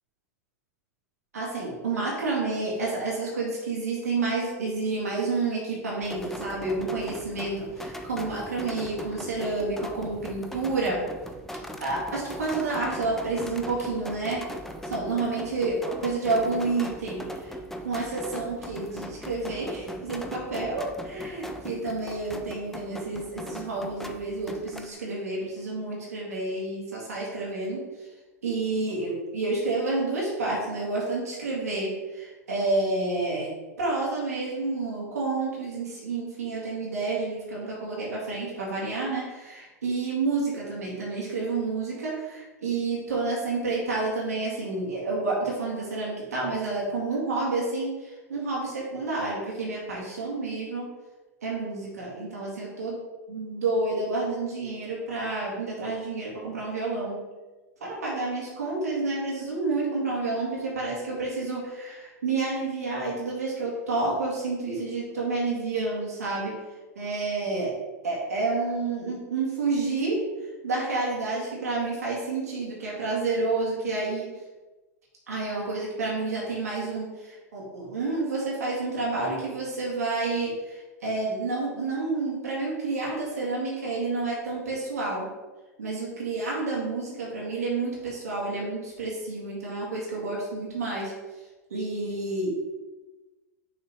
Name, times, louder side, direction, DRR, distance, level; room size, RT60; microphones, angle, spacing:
voice 1, 1.3-11.0 11.8-14.4 14.9-17.6 17.8-27.8 28.4-33.5 33.8-50.9 51.4-53.0 53.3-57.2 57.8-66.5 67.0-67.7 68.0-70.2 70.6-74.3 75.3-85.3 85.8-91.1 91.7-92.5, right 3 dB, 80° right, -4 dB, 2.0 m, -29 dB
sound 1, 6.0-24.9, equal, 5° left, 0.6 m, -39 dB
6.4 x 4.3 x 4.0 m, 1.2 s
hypercardioid pair, 95°, 8 cm